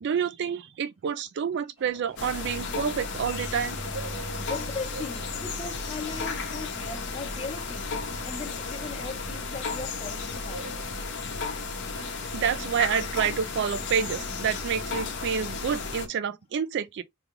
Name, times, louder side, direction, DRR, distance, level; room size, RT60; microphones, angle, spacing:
voice 1, 0.0-3.8 11.9-17.0, right 7 dB, 50° right, 0.3 m, -29 dB
sound 1, 1.8-16.2, right 4 dB, 85° right, 1.9 m, -50 dB
sound 2, 2.2-16.1, left 4 dB, 55° left, 0.9 m, -34 dB
voice 2, 4.3-10.8, left 3 dB, 25° left, 1.0 m, -38 dB
3.6 x 2.4 x 3.0 m
head